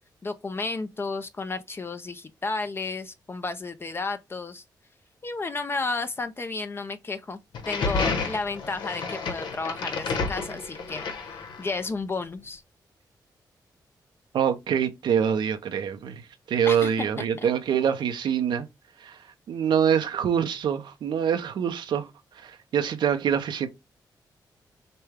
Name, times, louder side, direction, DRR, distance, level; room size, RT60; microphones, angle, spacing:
voice 1, 0.2-4.6 5.2-7.4 7.7-12.6 16.7-17.5, left 3 dB, 30° left, 0.6 m, -32 dB
sound 1, 7.5-11.9, left 4 dB, 90° left, 1.2 m, -30 dB
voice 2, 14.3-16.2 16.5-18.7 19.0-19.2 19.5-22.1 22.4-23.7, right 8 dB, 80° right, 0.8 m, -25 dB
6.7 x 2.3 x 3.4 m
cardioid pair, 100°, 8 cm